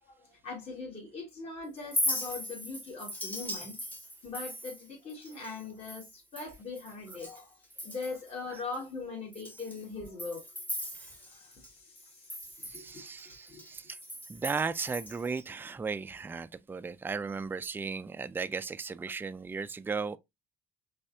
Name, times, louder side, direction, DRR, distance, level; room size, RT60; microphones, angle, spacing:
voice 1, 0.0-3.8 4.2-10.4 11.1-13.6, left 4 dB, 40° left, 2.2 m, -41 dB
Chink clink, 1.8-7.4 7.7-8.3 8.7-8.8 9.3-11.7 12.0-15.4, left 1 dB, 10° left, 1.1 m, -38 dB
voice 2, 12.6-14.0 14.3-20.2, right 5 dB, 10° right, 0.3 m, -36 dB
5.5 x 3.4 x 2.7 m
cardioid pair, 110°, 17 cm